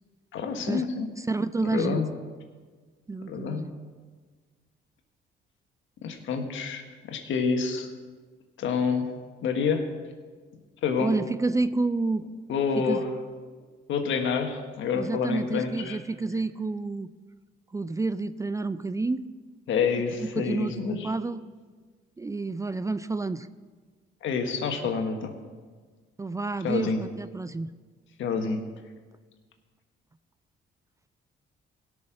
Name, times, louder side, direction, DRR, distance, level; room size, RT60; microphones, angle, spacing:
voice 1, 0.3-1.1 1.6-2.1 3.3-3.7 6.0-7.9 8.6-9.1 9.4-9.9 10.8-11.1 12.5-13.1 13.9-16.0 19.7-21.1 24.2-25.4 26.6-27.0 28.2-28.6, left 5 dB, 75° left, 5 dB, 1.5 m, -28 dB
voice 2, 1.2-2.0 3.1-3.7 11.0-12.3 12.8-13.0 14.9-17.1 17.7-19.3 20.2-21.4 22.2-23.5 26.2-27.7, right 3 dB, 15° right, 14 dB, 0.4 m, -29 dB
16.5 x 6.4 x 6.2 m, 1.5 s
cardioid pair, 90°, 20 cm